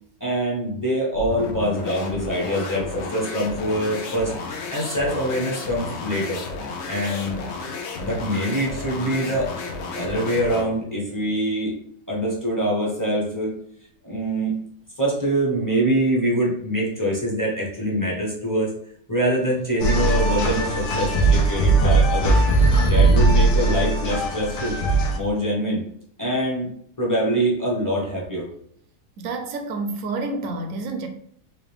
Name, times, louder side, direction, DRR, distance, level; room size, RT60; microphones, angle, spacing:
voice 1, 0.2-4.3 4.7-6.4 6.9-7.4 8.0-9.5 9.9-11.8 12.1-13.6 14.0-14.6 15.0-18.7 19.1-22.4 22.8-24.8 25.1-25.8 26.2-26.7 27.0-28.5, right 1 dB, 15° left, -4 dB, 0.8 m, -24 dB
sound 1, 1.1-10.8, left 4 dB, 65° left, 0.7 m, -32 dB
sound 2, 19.8-25.2, right 2 dB, 85° left, 1.3 m, -19 dB
voice 2, 29.2-31.1, right 3 dB, 70° right, 5 dB, 0.9 m, -29 dB
4.2 x 2.5 x 3.4 m, 0.67 s
omnidirectional pair, 1.7 m